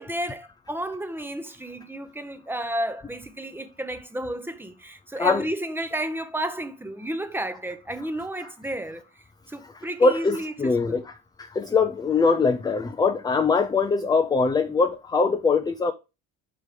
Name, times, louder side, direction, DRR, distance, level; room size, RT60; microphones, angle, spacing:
voice 1, 0.0-9.0 9.5-10.5 10.8-11.0, right 1 dB, 5° right, 0.8 m, -32 dB
voice 2, 9.6-15.9, left 4 dB, 10° left, 0.4 m, -23 dB
5.3 x 4.7 x 4.9 m
cardioid pair, 115°, 33 cm